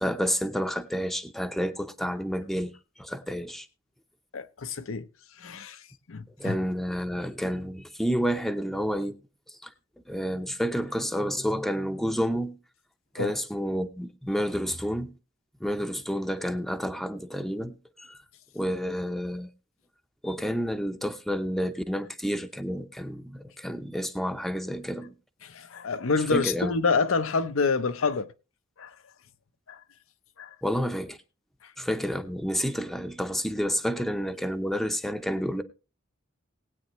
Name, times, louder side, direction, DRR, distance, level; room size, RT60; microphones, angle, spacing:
voice 1, 0.0-2.7 3.0-3.7 6.4-9.2 9.6-9.7 10.1-12.6 13.1-15.1 15.6-18.1 18.5-19.5 20.2-25.1 26.3-26.7 30.6-31.2 31.8-35.6, equal, ahead, 0.7 m, -30 dB
voice 2, 4.3-5.1 5.4-5.8 6.1-6.6 13.2-13.4 25.4-28.3 28.8-28.9 29.7-29.8 30.4-30.5, left 4 dB, 80° left, 0.7 m, -27 dB
19.5 x 8.7 x 3.1 m
head